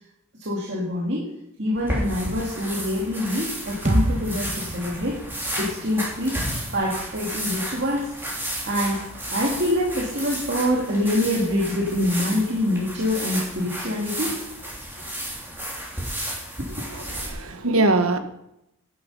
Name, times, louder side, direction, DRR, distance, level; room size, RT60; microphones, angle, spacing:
voice 1, 0.4-1.3 1.6-5.2 5.6-6.4 6.7-8.1 8.7-9.0 9.3-14.4, left 1 dB, 55° right, -4 dB, 2.3 m, -25 dB
sound 1, 1.7-17.3, right 1 dB, 10° right, 3.5 m, -32 dB
sound 2, 3.9-7.7, right 1 dB, 30° right, 1.4 m, -29 dB
voice 2, 16.9-18.2, right 2 dB, 80° right, 7 dB, 1.4 m, -22 dB
12.5 x 9.7 x 5.5 m, 0.84 s
head